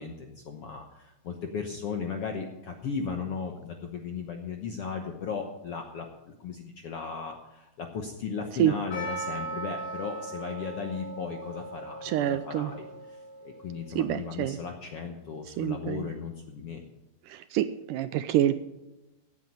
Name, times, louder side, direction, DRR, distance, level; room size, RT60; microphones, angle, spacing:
voice 1, 0.0-16.8, left 5 dB, 65° left, 4 dB, 1.5 m, -36 dB
Percussion, 8.9-13.8, right 2 dB, 80° left, 5.7 m, -39 dB
voice 2, 12.0-12.7 14.0-14.6 15.6-16.1 17.3-18.6, right 12 dB, 80° right, 12 dB, 2.0 m, -27 dB
16.0 x 9.2 x 5.5 m, 0.99 s
omnidirectional pair, 4.1 m